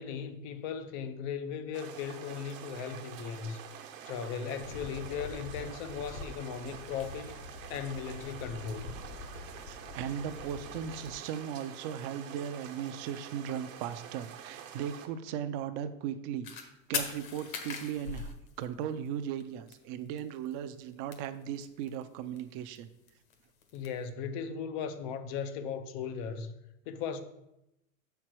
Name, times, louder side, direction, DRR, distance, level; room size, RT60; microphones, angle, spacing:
voice 1, 0.0-3.6 4.1-7.3 7.7-8.9 23.7-26.5 26.9-27.2, left 7 dB, 25° left, 0.3 m, -37 dB
sound 1, 1.7-15.1, right 9 dB, 65° right, 1.2 m, -47 dB
sound 2, 4.6-11.1, left 3 dB, 60° left, 1.0 m, -46 dB
voice 2, 9.7-18.3 18.6-22.9, right 9 dB, 35° right, 0.5 m, -37 dB
sound 3, 16.4-16.6 16.9-19.1 19.4-19.5 19.7-19.8 20.0-20.5 20.8-22.0 22.4-23.9, left 6 dB, 80° left, 1.5 m, -38 dB
6.5 x 4.6 x 6.1 m
supercardioid pair, 140°, 41 cm